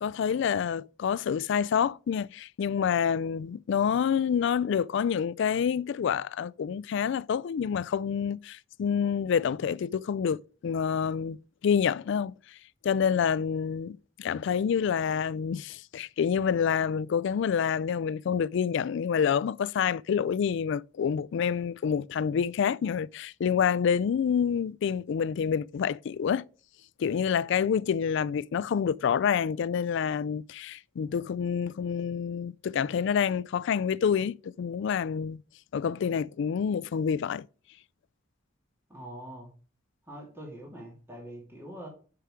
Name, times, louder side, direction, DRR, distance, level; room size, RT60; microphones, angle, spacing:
voice 1, 0.0-11.4 11.6-12.3 12.8-26.4 27.0-35.4 35.7-37.4, left 7 dB, 65° left, 0.3 m, -27 dB
voice 2, 38.9-39.5 40.1-41.9, right 1 dB, 15° right, 2.5 m, -43 dB
6.9 x 5.8 x 4.9 m
head